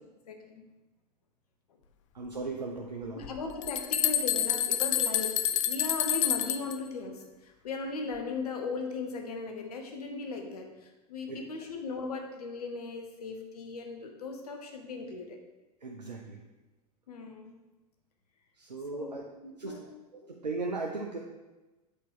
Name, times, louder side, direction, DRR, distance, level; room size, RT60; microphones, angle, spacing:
voice 1, 0.3-0.6 3.1-15.4 17.1-17.6 18.9-19.9 20.2-20.4, left 4 dB, 65° left, 4 dB, 1.2 m, -38 dB
voice 2, 2.1-3.2 11.3-11.4 15.8-16.4 18.6-19.2 19.6-19.7 20.3-21.2, right 3 dB, 80° right, 0 dB, 0.8 m, -37 dB
sound 1, 3.2-6.8, left 11 dB, 50° left, 0.5 m, -28 dB
8.1 x 4.3 x 3.7 m, 1.1 s
figure-of-eight pair, 95°, 21 cm